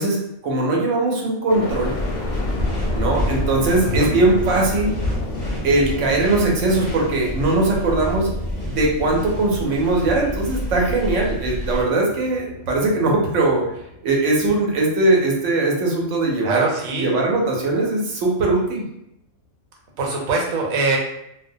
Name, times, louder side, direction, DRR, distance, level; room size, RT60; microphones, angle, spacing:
voice 1, 0.0-1.9 2.9-5.0 5.6-8.3 8.7-13.7 14.0-16.7 17.0-18.8, right 2 dB, 70° right, -1 dB, 0.9 m, -20 dB
sound 1, 1.5-15.5 16.0-16.7, left 2 dB, 90° left, 1.0 m, -32 dB
sound 2, 1.7-11.8, left 1 dB, 25° left, 0.6 m, -29 dB
voice 2, 16.4-17.2 20.0-21.0, right 3 dB, 90° right, -1 dB, 1.1 m, -23 dB
2.4 x 2.1 x 2.6 m, 0.80 s
omnidirectional pair, 1.4 m